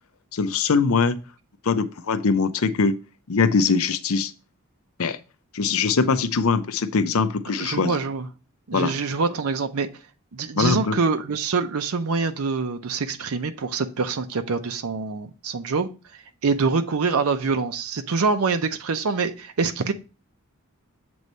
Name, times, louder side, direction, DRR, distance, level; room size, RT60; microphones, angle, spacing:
voice 1, 0.3-1.2 1.6-3.0 3.3-4.3 5.0-5.2 5.5-8.0 8.7-8.9 10.6-11.0, left 5 dB, 70° left, 0.6 m, -22 dB
voice 2, 7.6-8.3 8.7-9.9 10.3-15.9 16.4-19.9, right 4 dB, 75° right, 0.6 m, -25 dB
7.8 x 3.1 x 5.4 m
head